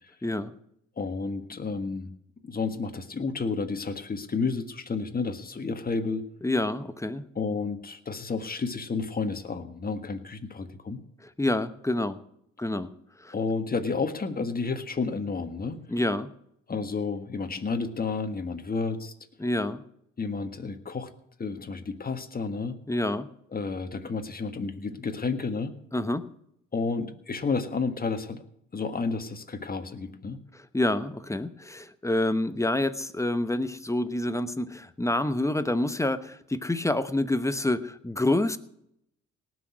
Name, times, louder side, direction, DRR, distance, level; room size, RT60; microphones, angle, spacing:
voice 1, 0.2-0.5 6.4-7.2 11.2-12.2 12.6-12.9 13.2-13.3 15.9-16.3 19.4-19.8 22.9-23.3 25.9-26.3 30.5-38.6, left 1 dB, 10° left, 12 dB, 0.9 m, -27 dB
voice 2, 1.0-2.1 2.4-6.2 7.3-11.0 13.3-15.8 16.7-19.1 20.2-21.1 21.4-22.8 23.5-25.8 26.7-28.4 28.7-30.4, left 4 dB, 30° left, 7 dB, 1.6 m, -31 dB
18.5 x 6.3 x 9.6 m, 0.75 s
cardioid pair, 90°, 30 cm